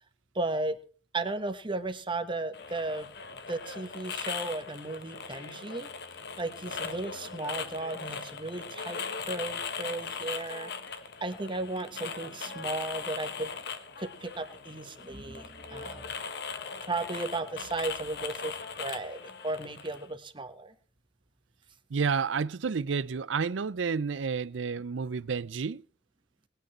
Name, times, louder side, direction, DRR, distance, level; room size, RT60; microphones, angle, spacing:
voice 1, 0.3-0.8 1.1-3.1 3.5-5.9 6.4-13.5 14.0-16.0 16.8-19.2 19.4-20.7, right 2 dB, 25° right, 1.3 m, -35 dB
sound 1, 2.5-20.1, left 5 dB, 65° left, 1.5 m, -39 dB
voice 2, 21.9-25.8, right 5 dB, 85° right, 0.5 m, -30 dB
20.5 x 9.1 x 4.3 m
head